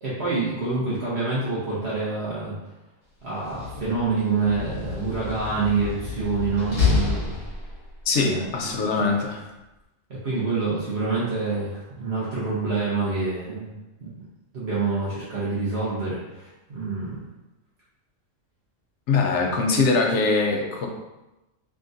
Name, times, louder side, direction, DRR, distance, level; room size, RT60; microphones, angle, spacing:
voice 1, 0.0-2.5 3.2-7.4 8.2-8.5 8.9-9.0 10.1-14.1 14.5-17.3, right 4 dB, 55° right, -9 dB, 1.2 m, -27 dB
Slam, 3.3-8.0, left 5 dB, 45° left, 1.5 m, -28 dB
voice 2, 8.1-9.5 19.1-20.9, left 4 dB, 65° left, 2 dB, 0.9 m, -22 dB
3.7 x 3.5 x 2.6 m, 1.0 s
omnidirectional pair, 1.4 m